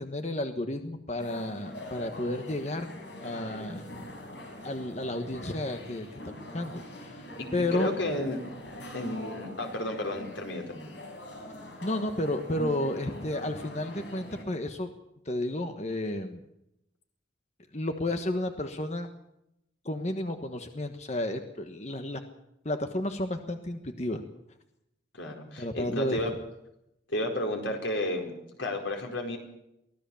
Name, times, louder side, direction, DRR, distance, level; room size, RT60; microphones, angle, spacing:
voice 1, 0.0-2.9 3.2-3.9 4.6-7.2 7.5-7.9 11.8-14.9 15.2-16.4 17.7-19.1 19.8-22.2 22.6-24.2 25.6-26.2, left 1 dB, 35° left, 6 dB, 1.4 m, -32 dB
sound 1, 1.2-14.4, left 1 dB, 70° left, 5.8 m, -43 dB
voice 2, 7.4-8.4 8.9-10.9 25.1-26.3 27.1-28.3 28.6-29.4, left 1 dB, 90° left, 3 dB, 4.7 m, -32 dB
23.5 x 17.0 x 7.1 m, 0.83 s
head